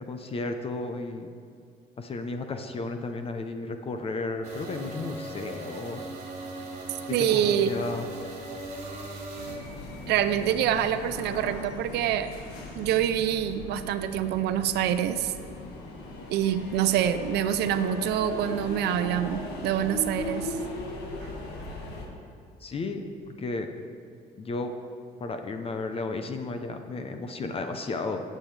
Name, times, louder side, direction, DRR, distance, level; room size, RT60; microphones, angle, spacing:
voice 1, 0.1-1.3 2.0-6.1 7.1-8.0 22.6-23.7 24.4-24.7 25.2-28.2, left 3 dB, 35° left, 6 dB, 0.7 m, -33 dB
sound 1, 4.4-9.6, right 2 dB, 40° right, 2.4 m, -39 dB
voice 2, 7.1-7.7 10.1-12.3 12.8-15.3 16.3-20.5, right 10 dB, 80° right, 11 dB, 0.6 m, -26 dB
sound 2, 9.3-22.1, left 1 dB, 75° left, 1.8 m, -38 dB
16.5 x 7.6 x 3.4 m, 2.4 s
cardioid pair, 110°, 17 cm